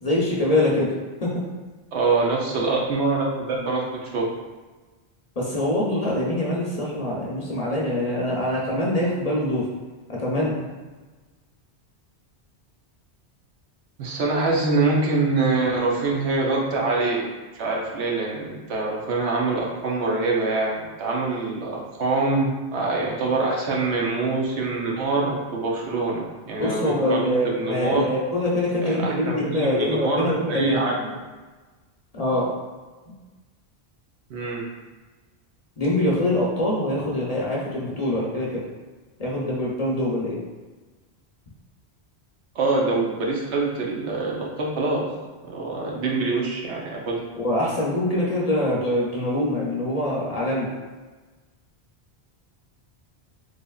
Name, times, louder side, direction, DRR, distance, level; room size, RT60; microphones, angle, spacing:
voice 1, 0.0-0.9 1.2-1.4 5.4-9.7 10.1-10.6 26.6-30.8 32.1-32.5 35.8-38.6 39.2-40.4 47.3-50.7, left 1 dB, 45° left, -5 dB, 0.6 m, -24 dB
voice 2, 1.9-4.3 14.0-17.3 17.6-28.1 28.8-31.1 34.3-34.7 42.5-45.1 45.4-47.2, right 3 dB, 80° right, -2 dB, 1.0 m, -25 dB
3.9 x 3.3 x 2.3 m, 1.3 s
omnidirectional pair, 1.1 m